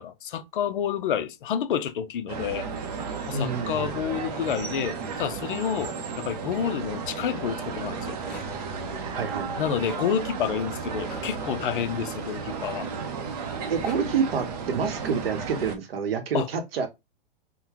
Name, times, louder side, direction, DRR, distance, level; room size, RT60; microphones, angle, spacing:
voice 1, 0.0-2.7 3.3-8.2 9.6-12.9 16.3-16.5, left 9 dB, 60° left, 0.5 m, -29 dB
sound 1, 2.3-15.8, right 5 dB, 40° right, 0.6 m, -34 dB
voice 2, 3.3-3.9 9.1-9.9 13.7-16.9, right 6 dB, 75° right, 0.9 m, -28 dB
Rattle, 7.9-8.7 9.5-10.1 11.0-12.9 13.5-14.0, left 2 dB, 5° left, 0.9 m, -46 dB
3.8 x 2.1 x 2.8 m
hypercardioid pair, 165°, 30 cm